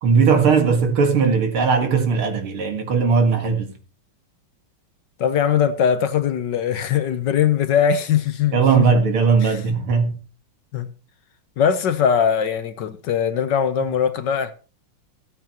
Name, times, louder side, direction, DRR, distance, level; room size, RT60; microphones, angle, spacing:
voice 1, 0.0-3.7 8.5-10.2, right 5 dB, 80° right, 2.7 m, -18 dB
voice 2, 5.2-8.9 9.4-9.6 10.7-10.9 11.6-14.5, left 8 dB, 65° left, 1.4 m, -21 dB
15.5 x 9.1 x 3.0 m
omnidirectional pair, 2.3 m